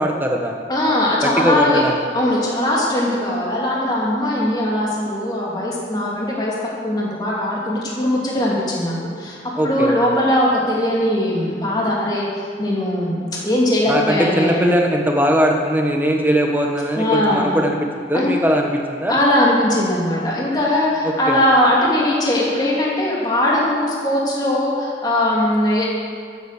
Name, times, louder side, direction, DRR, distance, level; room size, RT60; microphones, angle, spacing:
voice 1, 0.0-0.6 1.2-1.9 9.6-10.0 13.9-17.8 18.1-19.2 21.0-21.4, equal, 10° right, 2 dB, 1.2 m, -20 dB
voice 2, 0.7-1.8 2.1-6.5 6.8-14.7 17.0-17.6 18.1-18.3 19.1-25.9, left 1 dB, 25° left, -4 dB, 2.4 m, -20 dB
13.5 x 8.4 x 6.6 m, 2.2 s
head